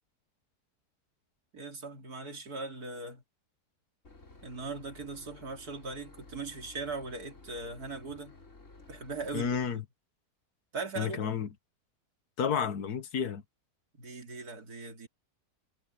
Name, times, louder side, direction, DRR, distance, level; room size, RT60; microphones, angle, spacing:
voice 1, 1.5-3.2 4.4-8.4 8.9-9.8 10.7-11.3 14.0-15.1, right 3 dB, 75° right, 3.2 m, -40 dB
Boat Water vehicle / Engine, 4.0-9.7, left 3 dB, 50° left, 4.0 m, -54 dB
voice 2, 9.3-9.8 11.0-11.5 12.4-13.4, left 7 dB, 80° left, 1.8 m, -31 dB
omnidirectional pair, 1.6 m